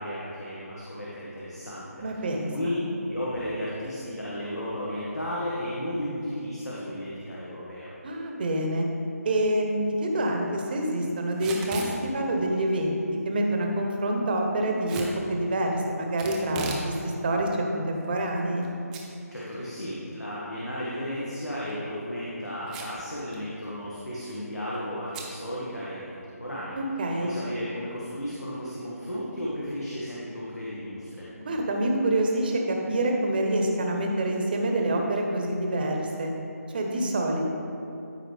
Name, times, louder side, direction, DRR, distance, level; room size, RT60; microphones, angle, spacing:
voice 1, 0.0-7.9 19.3-26.7 27.2-31.3, equal, 80° left, -8 dB, 1.7 m, -34 dB
voice 2, 2.0-2.8 8.0-8.9 9.2-18.7 26.8-27.3 31.4-36.3 36.7-37.5, right 1 dB, 35° right, 1 dB, 1.0 m, -27 dB
Packing tape duct tape / Tearing, 11.3-11.9 14.9-15.1 16.2-16.9 17.3-17.4 18.0-18.7 18.9-19.0 19.4-19.5 21.5-21.7 22.7-23.0 23.3-23.4 23.7-24.0 25.1-25.3, right 3 dB, 5° right, 0.4 m, -36 dB
13.5 x 4.7 x 3.4 m, 2.7 s
figure-of-eight pair, 150°, 9 cm